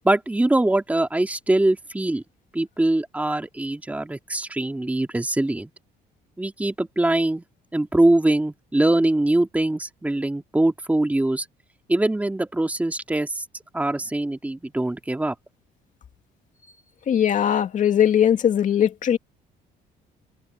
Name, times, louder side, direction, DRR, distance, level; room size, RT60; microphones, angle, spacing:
voice 1, 0.0-2.2 2.5-5.7 6.4-7.4 7.7-11.5 11.9-13.4 13.7-15.3, right 1 dB, 10° right, 2.5 m, -22 dB
voice 2, 17.1-19.2, left 9 dB, 50° left, 2.3 m, -20 dB
cardioid pair, 110°, 17 cm